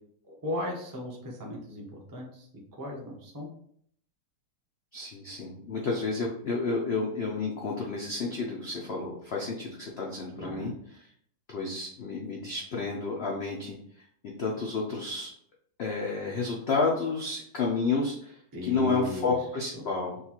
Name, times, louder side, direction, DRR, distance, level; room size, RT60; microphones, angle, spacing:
voice 1, 0.3-3.5 10.3-10.8 18.5-19.3, equal, 20° right, -2 dB, 0.5 m, -37 dB
voice 2, 4.9-11.1 11.5-15.3 15.8-20.2, left 4 dB, 80° left, -2 dB, 0.5 m, -31 dB
6.4 x 2.4 x 2.9 m, 0.66 s
omnidirectional pair, 1.9 m